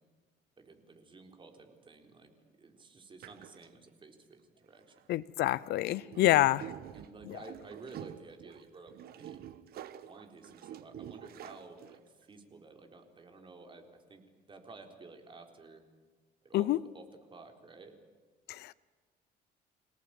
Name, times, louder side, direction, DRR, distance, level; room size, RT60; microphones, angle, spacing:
voice 1, 0.6-2.3 2.6-5.0 6.1-6.4 6.9-9.4 10.0-15.8 16.4-18.0, right 3 dB, 30° right, 5 dB, 4.1 m, -53 dB
sound 1, 3.2-3.7 5.0-5.2 5.8-12.2, right 11 dB, 65° right, 1.4 m, -47 dB
voice 2, 5.1-6.7 16.5-16.8 18.5-18.7, left 15 dB, 75° left, 18 dB, 0.7 m, -27 dB
27.0 x 18.0 x 9.0 m, 1.5 s
cardioid pair, 110°, 17 cm